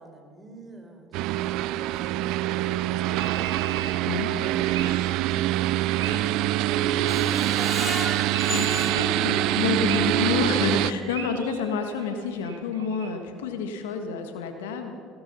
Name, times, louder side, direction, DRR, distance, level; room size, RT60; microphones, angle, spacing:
voice 1, 0.0-2.9 3.2-3.5 3.8-6.8 7.2-7.7, right 2 dB, 20° right, 2 dB, 4.2 m, -46 dB
sound 1, 1.1-10.9, right 14 dB, 65° right, 0.4 m, -25 dB
sound 2, 3.2-8.0 8.3-10.3 10.6-13.1, right 8 dB, 90° right, 1.1 m, -40 dB
voice 2, 4.0-4.4 8.5-14.9, left 5 dB, 80° left, 6 dB, 1.6 m, -29 dB
Screech, 7.1-10.1 10.5-10.6 11.0-11.1, left 1 dB, 15° left, 1.8 m, -35 dB
18.0 x 12.5 x 5.6 m, 2.2 s
hypercardioid pair, 65°, 0 cm